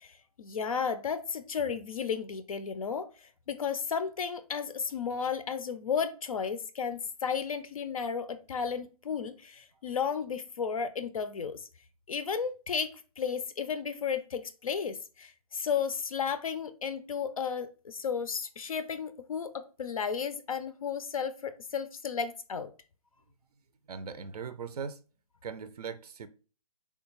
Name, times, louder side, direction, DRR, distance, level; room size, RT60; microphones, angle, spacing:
voice 1, 0.0-11.6 12.1-12.9 13.2-19.5 19.8-22.7, left 6 dB, 65° left, 0.4 m, -33 dB
voice 2, 23.9-25.0 25.4-26.3, right 6 dB, 80° right, 0.4 m, -39 dB
3.4 x 2.2 x 3.0 m
hypercardioid pair, 170°, 20 cm